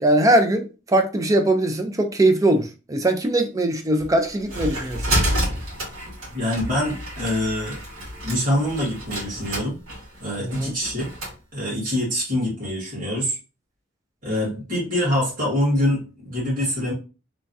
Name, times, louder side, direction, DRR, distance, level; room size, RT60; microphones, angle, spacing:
voice 1, 0.0-5.0 10.4-10.7, right 1 dB, 15° right, 0.3 m, -21 dB
sound 1, 4.0-11.4, equal, 75° right, 1.5 m, -29 dB
voice 2, 6.3-7.8 8.2-9.8 10.2-11.1 11.5-13.4 14.2-16.9, equal, 40° right, 1.7 m, -25 dB
3.1 x 2.3 x 2.6 m
head